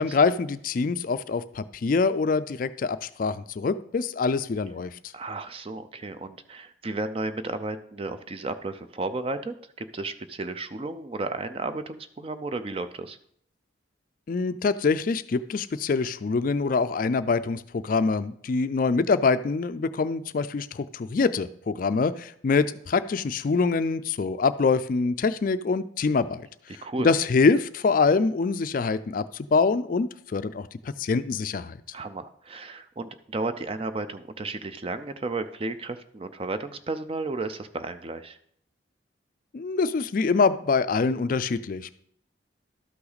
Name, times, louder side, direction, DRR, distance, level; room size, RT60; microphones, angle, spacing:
voice 1, 0.0-4.9 14.3-26.5 27.0-29.2 29.5-30.7 31.0-31.8 39.5-42.0, left 4 dB, 45° left, 13 dB, 0.3 m, -24 dB
voice 2, 5.1-13.2 26.8-27.1 31.9-38.4, right 3 dB, 30° right, 10 dB, 0.4 m, -33 dB
12.5 x 5.8 x 4.0 m, 0.67 s
head